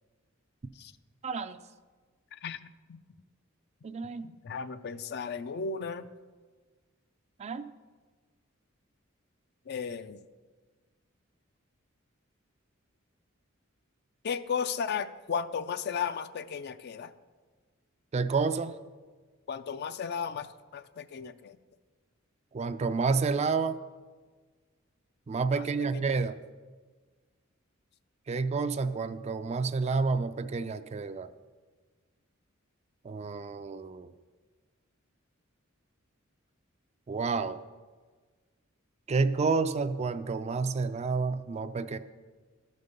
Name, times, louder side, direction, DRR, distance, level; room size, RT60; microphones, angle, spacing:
voice 1, 1.2-1.6 3.8-4.3 7.4-7.6 18.1-18.8 22.5-23.8 25.3-26.4 28.3-31.3 33.0-34.1 37.1-37.6 39.1-42.0, right 4 dB, 30° right, 12 dB, 0.3 m, -29 dB
voice 2, 4.4-6.1 9.7-10.2 14.2-17.1 19.5-21.6 25.5-26.1, left 6 dB, 50° left, 12 dB, 0.4 m, -35 dB
12.0 x 5.3 x 6.6 m, 1.4 s
head